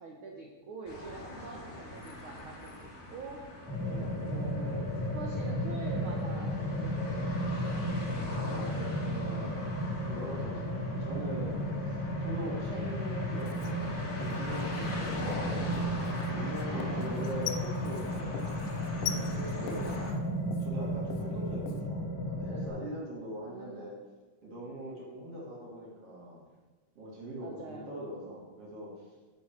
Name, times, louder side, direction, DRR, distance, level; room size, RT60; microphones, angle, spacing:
voice 1, 0.0-3.4 4.2-7.9 12.7-13.0 16.6-17.3 19.8-20.0 23.4-24.0 27.4-27.9, right 3 dB, 80° right, 0 dB, 1.1 m, -45 dB
sound 1, 0.9-20.1, left 1 dB, 45° left, 1.1 m, -43 dB
sound 2, 3.7-22.7, equal, 10° left, 2.4 m, -34 dB
voice 2, 3.8-4.3 8.4-9.6 10.1-15.6 16.2-19.9 20.6-24.0 24.4-26.4 26.9-29.1, equal, 50° right, -5 dB, 3.0 m, -42 dB
Writing, 13.4-21.9, left 9 dB, 90° left, 2.2 m, -44 dB
9.8 x 6.2 x 4.4 m, 1.3 s
omnidirectional pair, 3.7 m